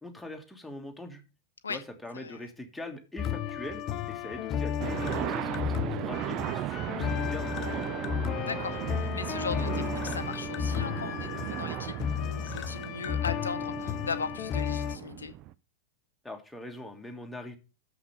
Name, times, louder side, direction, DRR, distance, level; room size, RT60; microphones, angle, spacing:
voice 1, 0.0-1.2 1.7-3.8 4.1-8.0 16.2-17.6, left 1 dB, 5° left, 1.6 m, -42 dB
sound 1, 3.2-15.0, left 8 dB, 35° left, 0.6 m, -33 dB
sound 2, 4.8-15.5, right 14 dB, 40° right, 0.4 m, -36 dB
voice 2, 8.4-15.3, left 5 dB, 75° left, 0.8 m, -38 dB
7.0 x 5.8 x 6.8 m
figure-of-eight pair, 90°, 0 cm